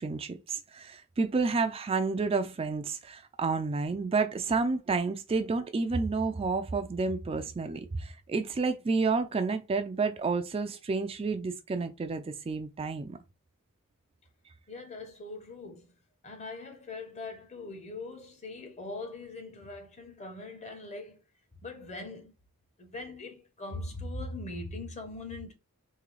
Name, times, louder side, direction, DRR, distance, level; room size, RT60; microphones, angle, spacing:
voice 1, 0.0-13.2, right 4 dB, 25° right, 0.3 m, -30 dB
voice 2, 14.7-15.9 16.2-21.2 21.6-22.3 22.8-25.5, left 2 dB, 30° left, 0.9 m, -41 dB
3.7 x 2.8 x 3.2 m
head